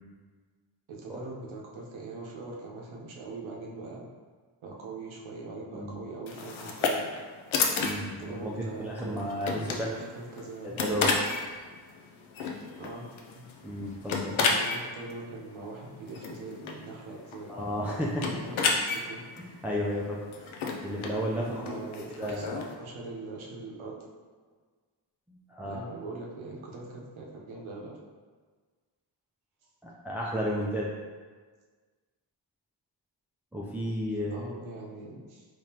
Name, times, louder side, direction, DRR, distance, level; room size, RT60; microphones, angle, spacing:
voice 1, 0.9-4.0 4.6-7.1 8.2-10.8 12.8-13.0 13.3-13.5 14.5-17.5 18.2-19.2 21.5-24.1 25.6-28.0 34.3-35.5, right 3 dB, 80° right, -2 dB, 0.8 m, -42 dB
sound 1, 6.3-22.8, left 4 dB, 80° left, 0.6 m, -33 dB
voice 2, 7.8-8.5 8.8-9.9 10.6-11.1 13.6-14.4 17.5-18.3 19.4-20.2 20.8-21.8 22.1-22.6 25.3-25.8 29.8-30.9 33.5-34.5, equal, 5° right, -5 dB, 0.5 m, -33 dB
3.6 x 3.1 x 2.9 m, 1.5 s
cardioid pair, 65°, 47 cm